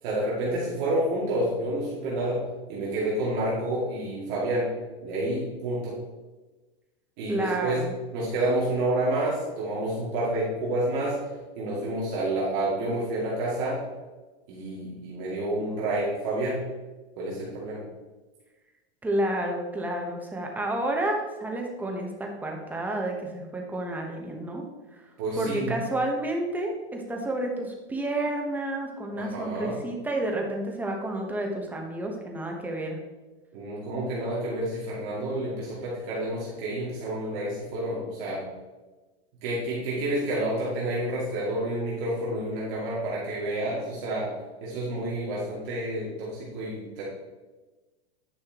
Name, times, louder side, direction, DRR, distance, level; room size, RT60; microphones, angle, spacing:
voice 1, 0.0-2.4 2.7-4.7 5.0-6.0 7.2-7.8 8.1-11.2 11.6-13.8 14.5-16.6 17.2-17.8 25.2-25.8 29.1-29.7 33.5-38.4 39.4-44.3 44.6-47.0, right 1 dB, 45° right, -6 dB, 2.3 m, -29 dB
voice 2, 7.3-7.9 19.0-24.6 25.4-33.0, right 1 dB, 5° right, 1 dB, 0.9 m, -30 dB
10.0 x 5.6 x 2.9 m, 1.2 s
supercardioid pair, 145°, 32 cm